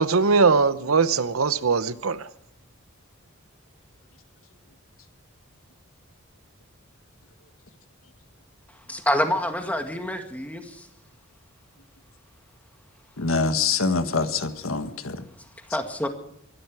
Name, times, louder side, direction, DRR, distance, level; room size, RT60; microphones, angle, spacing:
voice 1, 0.0-2.3, right 4 dB, 85° right, 0.9 m, -21 dB
voice 2, 8.9-10.9 15.7-16.1, left 1 dB, 5° left, 1.9 m, -27 dB
voice 3, 13.2-15.2, left 4 dB, 80° left, 1.6 m, -25 dB
23.5 x 12.0 x 4.8 m
head